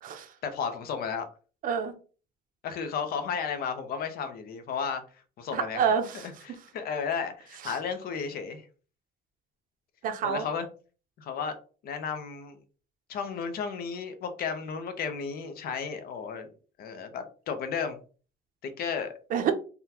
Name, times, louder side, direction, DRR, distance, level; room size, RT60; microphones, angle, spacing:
voice 1, 0.4-1.2 2.6-5.0 5.4-5.8 6.2-8.6 10.2-10.7 11.2-11.5 11.8-12.6 13.1-16.5 16.8-18.0 18.8-19.1, left 6 dB, 55° left, 8 dB, 0.7 m, -33 dB
voice 2, 5.5-6.3 7.6-7.8 10.0-10.5 19.3-19.5, right 7 dB, 50° right, 8 dB, 0.5 m, -28 dB
3.6 x 2.2 x 2.8 m, 0.38 s
cardioid pair, 160°, 19 cm